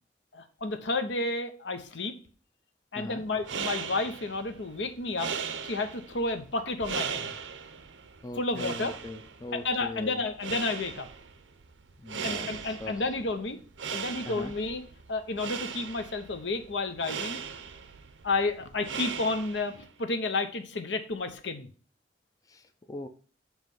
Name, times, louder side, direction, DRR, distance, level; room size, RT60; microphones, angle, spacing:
voice 1, 0.3-2.2 2.9-5.3 5.6-7.3 8.4-8.9 9.5-11.1 12.2-13.6 13.9-14.8 15.1-17.4 18.2-21.7, left 3 dB, 75° left, 8 dB, 0.8 m, -31 dB
sound 1, 3.2-19.9, right 6 dB, 90° right, 0.6 m, -39 dB
voice 2, 8.2-10.2 12.0-12.5 12.8-13.0 14.3-14.5 22.5-22.6 22.9-23.1, left 1 dB, 20° left, 6 dB, 0.5 m, -39 dB
7.3 x 3.1 x 5.4 m, 0.40 s
head